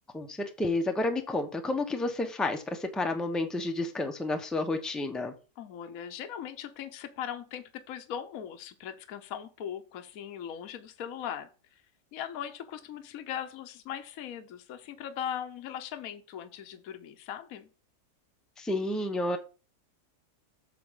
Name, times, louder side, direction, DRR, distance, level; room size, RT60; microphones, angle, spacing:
voice 1, 0.1-5.3 18.6-19.4, left 2 dB, ahead, 5 dB, 0.7 m, -30 dB
voice 2, 5.6-11.8 12.1-17.7, left 9 dB, 60° left, 7 dB, 1.2 m, -39 dB
7.8 x 6.8 x 3.7 m, 0.33 s
omnidirectional pair, 1.8 m